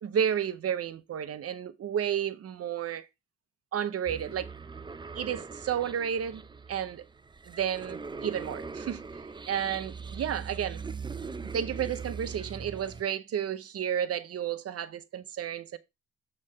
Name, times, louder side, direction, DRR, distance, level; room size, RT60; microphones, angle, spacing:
voice 1, 0.0-3.1 3.7-4.5 5.1-6.4 6.7-7.0 7.4-9.0 9.5-10.8 11.5-15.8, right 9 dB, 50° right, 0.8 m, -32 dB
sound 1, 4.1-13.0, right 5 dB, 15° right, 0.5 m, -41 dB
8.5 x 3.2 x 5.3 m
cardioid pair, 90°, 30 cm